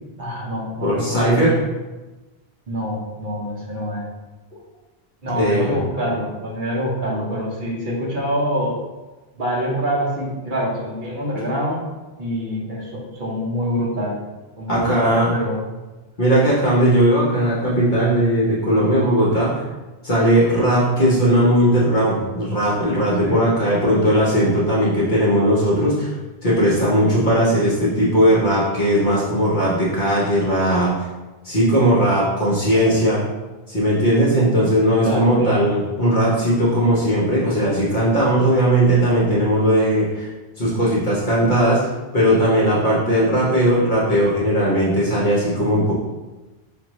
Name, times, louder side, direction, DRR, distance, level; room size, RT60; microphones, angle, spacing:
voice 1, 0.2-1.5 2.7-4.1 5.2-8.7 9.4-11.8 12.2-14.2 14.6-15.6 23.2-23.4 35.0-35.7, equal, 55° right, -3 dB, 1.1 m, -25 dB
voice 2, 0.8-1.5 5.4-5.8 14.7-15.4 16.2-19.7 20.0-26.2 26.4-30.9 31.4-33.2 33.7-40.3 40.6-45.9, equal, 50° left, -7 dB, 1.0 m, -18 dB
5.2 x 2.5 x 3.0 m, 1.2 s
omnidirectional pair, 1.1 m